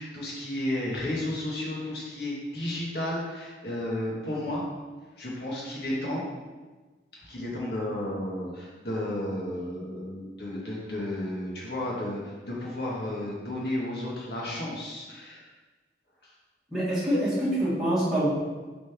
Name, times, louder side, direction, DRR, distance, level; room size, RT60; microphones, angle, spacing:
voice 1, 0.0-4.7 5.2-6.3 7.1-15.5 16.2-16.3, left 1 dB, 70° left, -4 dB, 1.7 m, -33 dB
voice 2, 16.7-18.3, right 1 dB, 5° right, -11 dB, 1.7 m, -25 dB
6.9 x 4.0 x 3.6 m, 1.3 s
head